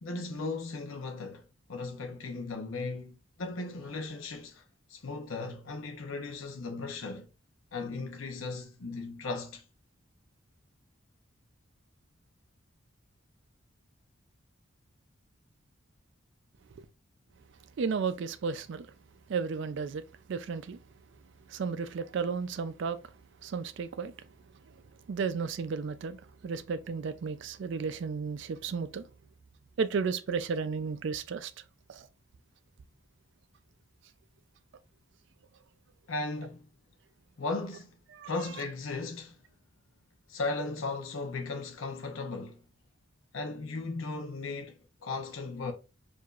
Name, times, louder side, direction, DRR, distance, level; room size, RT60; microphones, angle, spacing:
voice 1, 0.0-4.6 4.9-7.3 7.7-9.6 36.1-36.7 37.4-38.0 38.2-39.4 40.3-42.6 43.3-45.7, left 3 dB, 80° left, 0.7 m, -37 dB
voice 2, 17.8-18.9 19.3-20.0 20.3-20.8 21.5-23.0 23.4-24.1 25.1-29.1 29.8-31.5 31.9-32.1 38.2-38.3, right 5 dB, 60° right, 0.4 m, -33 dB
4.7 x 2.6 x 2.4 m
head